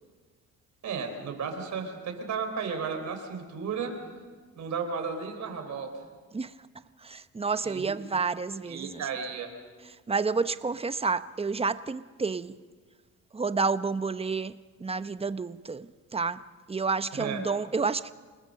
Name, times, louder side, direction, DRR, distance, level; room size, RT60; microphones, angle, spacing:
voice 1, 0.8-3.9 4.6-6.0 7.6-7.9 8.7-9.5 17.1-17.4, right 5 dB, 70° right, 4.2 m, -34 dB
voice 2, 7.0-9.0 10.1-12.6 13.3-14.5 14.8-16.4 16.7-18.1, right 4 dB, 20° right, 0.8 m, -30 dB
28.0 x 19.0 x 6.6 m
cardioid pair, 90°, 30 cm